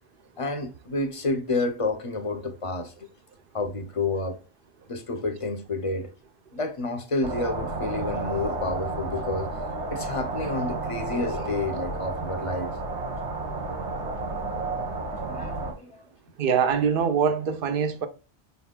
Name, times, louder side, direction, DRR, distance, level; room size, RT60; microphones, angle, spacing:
voice 1, 0.4-2.9 3.5-4.4 4.9-6.1 6.5-12.7 15.2-16.0, left 2 dB, 35° left, 0.6 m, -30 dB
sound 1, 7.2-15.7, right 3 dB, 85° right, 1.5 m, -31 dB
voice 2, 16.4-18.1, right 7 dB, 60° right, 0.8 m, -23 dB
5.5 x 3.9 x 2.2 m
omnidirectional pair, 1.1 m